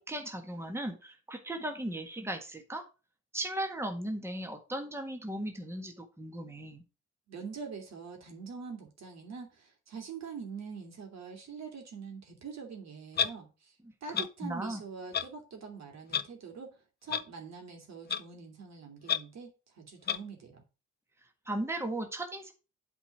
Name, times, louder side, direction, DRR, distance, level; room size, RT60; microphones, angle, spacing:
voice 1, 0.0-2.8 3.3-6.8 14.1-14.8 21.4-22.5, right 1 dB, 10° right, 1.6 m, -37 dB
voice 2, 7.3-13.7 14.0-20.6, right 5 dB, 60° right, 3.0 m, -44 dB
Clock, 13.2-13.3 14.1-14.3 15.1-15.3 16.1-16.2 17.1-17.2 18.1-18.2 19.1-19.2 20.1-20.2, left 7 dB, 35° left, 0.6 m, -29 dB
8.1 x 4.6 x 6.1 m
cardioid pair, 90°, 30 cm